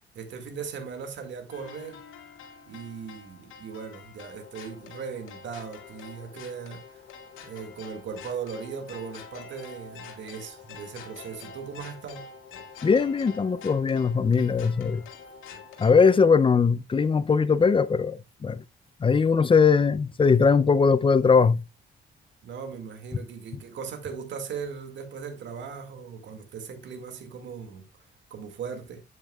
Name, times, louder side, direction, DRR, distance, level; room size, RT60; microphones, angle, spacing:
voice 1, 0.2-2.0 2.7-7.0 7.4-12.3 22.4-29.0, right 6 dB, 70° right, 2.0 m, -38 dB
sound 1, 1.5-16.2, left 5 dB, 90° left, 2.2 m, -46 dB
voice 2, 12.8-15.0 15.8-18.6 19.0-21.6, left 5 dB, 25° left, 0.5 m, -20 dB
8.9 x 8.3 x 2.3 m
cardioid pair, 90°, 20 cm